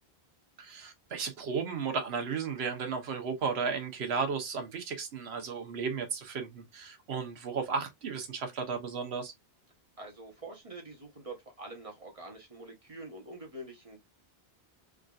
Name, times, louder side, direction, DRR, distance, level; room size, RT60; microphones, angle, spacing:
voice 1, 0.6-9.3, right 5 dB, 85° right, 1.1 m, -34 dB
voice 2, 10.0-14.0, right 2 dB, 35° right, 1.0 m, -45 dB
3.6 x 2.6 x 2.3 m
omnidirectional pair, 1.0 m